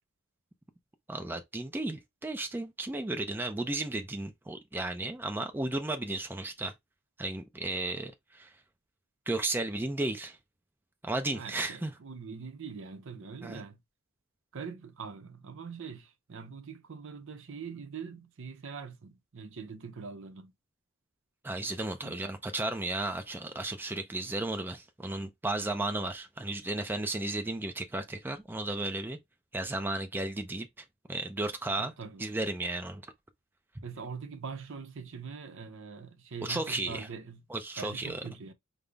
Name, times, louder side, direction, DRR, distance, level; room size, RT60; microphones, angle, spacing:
voice 1, 1.1-6.7 7.2-8.5 9.3-10.4 11.0-11.9 13.4-13.6 21.4-29.2 29.5-31.9 32.2-33.0 36.4-37.1 37.5-38.2, right 2 dB, 10° right, 0.4 m, -34 dB
voice 2, 11.3-13.8 14.5-20.5 22.0-22.2 31.8-32.3 33.8-37.4 37.8-38.5, right 5 dB, 60° right, 0.6 m, -43 dB
5.3 x 2.0 x 3.3 m
head